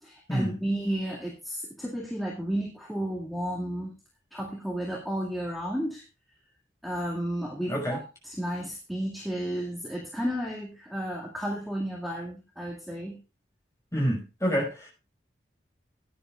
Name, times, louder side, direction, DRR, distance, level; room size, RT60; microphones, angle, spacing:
voice 1, 0.0-3.9 4.3-6.0 6.8-13.2, equal, ahead, 2.2 m, -32 dB
voice 2, 7.7-8.0 13.9-14.9, equal, 15° left, 5.3 m, -28 dB
16.5 x 10.5 x 2.5 m
head